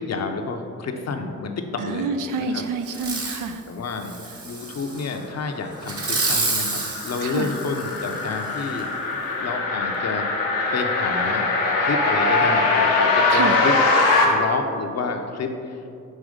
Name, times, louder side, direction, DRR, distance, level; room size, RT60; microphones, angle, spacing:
voice 1, 0.0-2.1 2.5-2.6 3.7-10.3 10.7-11.5 11.8-13.7 14.2-15.9, left 4 dB, 50° left, 5 dB, 0.7 m, -29 dB
voice 2, 1.8-3.6 7.2-7.5 13.3-13.6, right 4 dB, 70° right, 7 dB, 0.5 m, -27 dB
Fireworks, 2.9-3.5 4.0-5.1 5.8-8.2 8.8-8.9, right 3 dB, 45° right, 1.2 m, -28 dB
sound 1, 5.9-14.2, left 3 dB, 85° left, 0.9 m, -22 dB
6.5 x 3.1 x 5.0 m, 2.6 s
supercardioid pair, 45°, 33 cm